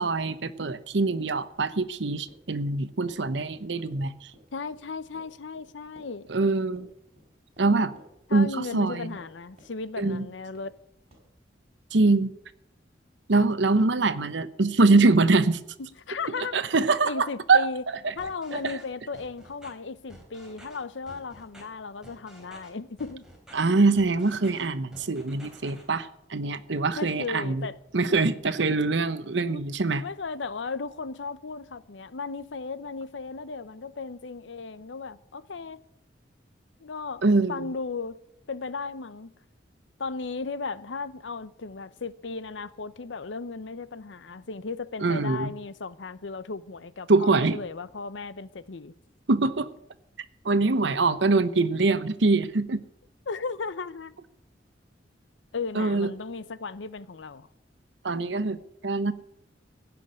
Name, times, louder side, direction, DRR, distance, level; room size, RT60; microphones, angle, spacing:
voice 1, 0.0-4.3 6.3-6.9 7.6-7.9 8.3-9.1 10.0-10.3 11.9-12.4 13.3-15.6 16.5-17.7 18.0-18.1 18.5-18.8 23.5-27.7 27.9-30.0 37.2-37.7 45.0-45.5 47.1-47.6 49.3-49.7 50.4-52.8 55.7-56.1 58.0-59.1, right 3 dB, 75° right, 0.9 m, -24 dB
Run, 2.3-9.3 9.6-10.2 10.5-10.8 11.1-11.2, equal, 35° right, 4.9 m, -55 dB
voice 2, 4.5-6.3 8.3-10.8 16.1-16.6 17.0-17.8 18.2-23.2 26.9-27.7 28.7-28.8 29.5-29.6 30.0-35.8 36.8-37.2 37.5-38.2 38.5-39.3 40.0-48.9 53.3-54.1 55.5-57.5, left 4 dB, 85° left, 0.7 m, -36 dB
sound 1, 18.2-18.8 19.1-19.7 20.1-20.8 21.1-21.6 22.0-22.7 23.0-23.5 23.9-24.6 24.9-25.8, equal, 5° right, 3.6 m, -49 dB
16.0 x 6.1 x 10.0 m
head